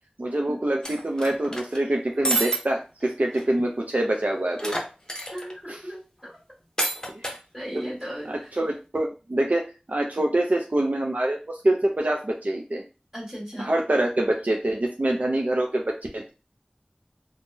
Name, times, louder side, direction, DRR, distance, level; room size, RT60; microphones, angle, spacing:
voice 1, 0.2-4.7 5.7-5.8 7.7-7.9 8.3-9.6 9.9-12.8 13.6-15.8 16.1-16.3, right 1 dB, 60° right, 1 dB, 0.4 m, -25 dB
sound 1, 0.8-1.8 2.2-2.6 3.0-3.1 3.3-3.4 4.6-5.5 6.8-7.4, right 2 dB, 25° left, 0.7 m, -28 dB
voice 2, 5.3-6.3 7.5-8.5 13.1-13.7, equal, 10° right, -4 dB, 1.7 m, -36 dB
3.5 x 2.1 x 2.6 m, 0.31 s
wide cardioid pair, 45°, 3 cm